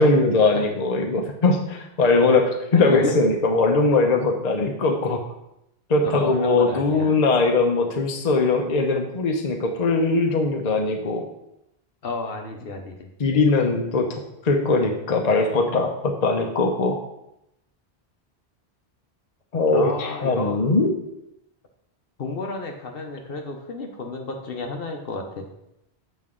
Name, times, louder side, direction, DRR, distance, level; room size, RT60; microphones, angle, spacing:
voice 1, 0.0-5.2 5.9-11.2 13.2-17.0 19.5-20.9, left 3 dB, 40° left, 3 dB, 0.8 m, -21 dB
voice 2, 2.7-3.2 6.0-7.2 12.0-13.1 19.7-20.6 22.2-25.5, left 3 dB, 65° left, 3 dB, 1.0 m, -31 dB
7.7 x 5.2 x 3.7 m, 0.84 s
omnidirectional pair, 1.1 m